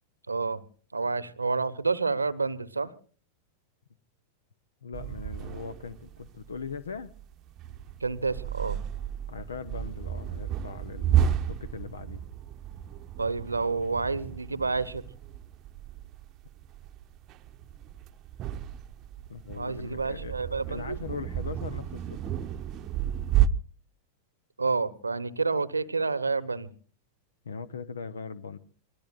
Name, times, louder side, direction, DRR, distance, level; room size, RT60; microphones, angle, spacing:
voice 1, 0.3-0.6 0.9-2.9 8.0-8.8 13.2-15.0 19.5-21.0 24.6-26.7, right 4 dB, 80° right, 18 dB, 1.0 m, -29 dB
voice 2, 4.8-7.1 9.3-12.2 19.3-20.3 20.7-22.2 27.4-28.6, left 5 dB, 70° left, 17 dB, 0.7 m, -40 dB
sound 1, 4.9-23.5, right 10 dB, 35° right, 0.8 m, -32 dB
27.0 x 20.5 x 2.4 m, 0.42 s
figure-of-eight pair, 90°, 0 cm